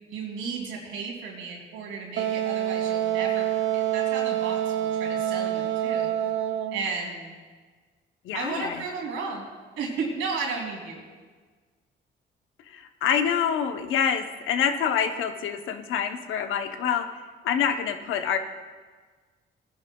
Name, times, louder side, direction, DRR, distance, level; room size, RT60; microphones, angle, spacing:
voice 1, 0.1-6.1 6.7-7.4 8.3-9.5 9.8-11.0, right 4 dB, 90° right, -1 dB, 2.9 m, -34 dB
Wind instrument woodwind instrument, 2.2-6.9, right 11 dB, 70° right, 0.6 m, -26 dB
voice 2, 8.2-8.8 12.7-17.1 17.4-18.4, left 8 dB, 85° left, 7 dB, 0.8 m, -26 dB
18.5 x 10.5 x 2.3 m, 1.5 s
cardioid pair, 90°, 20 cm